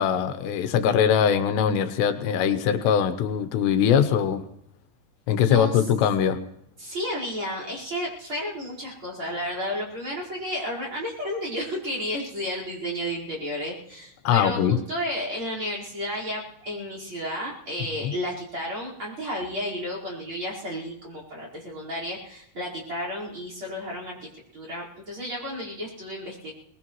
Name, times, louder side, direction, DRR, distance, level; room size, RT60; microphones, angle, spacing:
voice 1, 0.0-4.4 5.3-6.4 14.2-14.8 18.0-18.1, left 8 dB, 85° left, 10 dB, 3.2 m, -22 dB
voice 2, 5.4-5.8 6.8-24.2 24.5-26.5, equal, 30° right, -4 dB, 5.2 m, -32 dB
23.0 x 20.0 x 3.1 m, 0.79 s
omnidirectional pair, 4.8 m